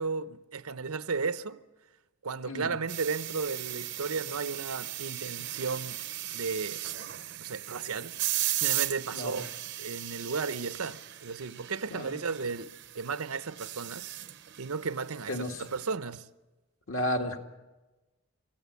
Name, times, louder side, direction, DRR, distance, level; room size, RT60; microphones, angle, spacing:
voice 1, 0.0-1.6 2.2-6.0 6.3-6.8 7.4-8.2 8.5-14.2 14.6-16.3, right 4 dB, 85° right, 0.8 m, -34 dB
sound 1, 2.9-16.0, right 14 dB, 55° right, 0.7 m, -37 dB
voice 2, 15.3-15.6 16.9-17.4, left 1 dB, 65° left, 2.0 m, -32 dB
25.5 x 16.0 x 8.3 m
head